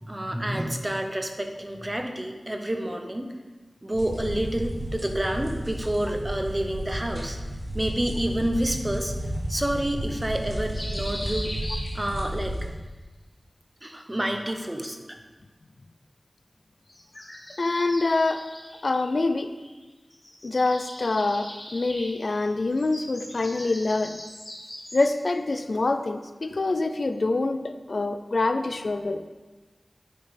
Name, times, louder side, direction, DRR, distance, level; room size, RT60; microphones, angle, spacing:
voice 1, 0.0-3.3 3.8-7.4 7.7-9.1 9.5-11.5 11.9-12.5 13.8-15.0, right 1 dB, 20° right, 4 dB, 0.8 m, -29 dB
sound 1, 3.9-12.7, right 1 dB, 75° right, 2.4 m, -32 dB
sound 2, 10.7-12.5 13.9-14.9 16.9-19.8 20.1-25.3, left 1 dB, 40° left, 1.9 m, -41 dB
voice 2, 17.6-18.5 18.8-19.6 20.4-24.2 24.9-29.2, left 2 dB, 65° left, 9 dB, 0.3 m, -25 dB
9.4 x 5.2 x 3.3 m, 1.2 s
wide cardioid pair, 55°, 0 cm